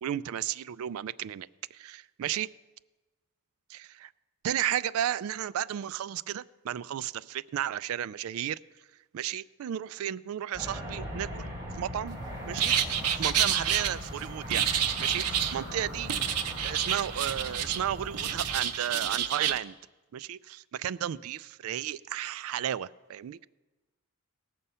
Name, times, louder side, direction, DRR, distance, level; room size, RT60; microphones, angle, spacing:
voice 1, 0.0-2.5 3.7-4.1 4.4-8.6 9.1-11.5 11.8-12.2 12.4-12.7 13.1-14.7 15.0-16.1 16.6-19.8 20.1-23.5, right 10 dB, 65° right, 19 dB, 0.3 m, -33 dB
sound 1, 10.5-18.6, equal, 15° right, 3.3 m, -40 dB
sound 2, 12.6-13.9 14.5-15.6 16.1-17.8 18.1-19.6, right 9 dB, 90° right, 0.7 m, -28 dB
18.5 x 6.9 x 5.5 m, 1.2 s
head